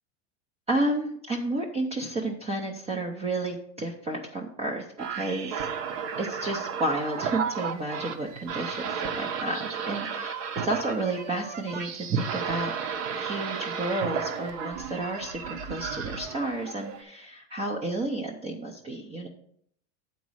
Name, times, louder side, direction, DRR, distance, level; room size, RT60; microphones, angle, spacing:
voice 1, 0.7-5.7 6.2-12.7 13.2-19.3, right 2 dB, 15° right, 1 dB, 0.5 m, -31 dB
sound 1, 5.0-17.0, right 7 dB, 45° right, 0.8 m, -33 dB
8.5 x 4.1 x 6.2 m, 0.67 s
supercardioid pair, 150°, 41 cm